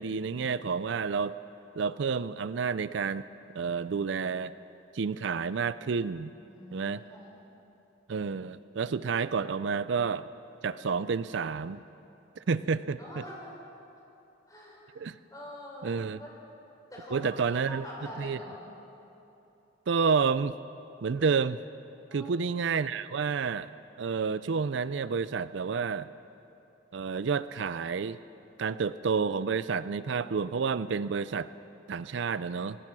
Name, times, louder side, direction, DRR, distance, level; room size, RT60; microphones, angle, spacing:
voice 1, 0.0-1.4 1.8-3.2 3.5-4.5 4.9-6.3 6.7-7.0 8.1-10.3 10.6-11.8 12.4-13.2 15.0-15.2 15.8-16.2 17.1-17.9 18.2-18.4 19.9-20.5 21.0-21.6 22.1-23.7 24.0-26.1 26.9-28.2 28.6-31.5 31.9-32.8, right 5 dB, 65° right, 15 dB, 0.4 m, -30 dB
voice 2, 6.5-7.4 13.0-13.6 14.5-14.9 15.3-16.4 16.9-18.7 22.1-22.3, left 1 dB, 15° left, -3 dB, 5.6 m, -45 dB
26.5 x 18.5 x 6.1 m, 2.9 s
head